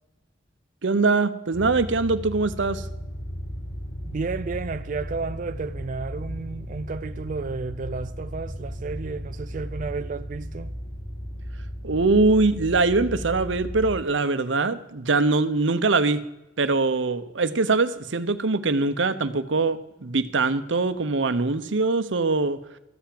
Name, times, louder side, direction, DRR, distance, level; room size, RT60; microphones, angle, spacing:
voice 1, 0.8-2.9 11.8-16.2 16.6-22.6, right 3 dB, 85° right, 0.8 m, -22 dB
sound 1, 1.5-14.0, equal, 65° left, 2.3 m, -35 dB
voice 2, 4.1-10.7, right 4 dB, 45° right, 0.4 m, -32 dB
14.0 x 5.9 x 8.5 m
head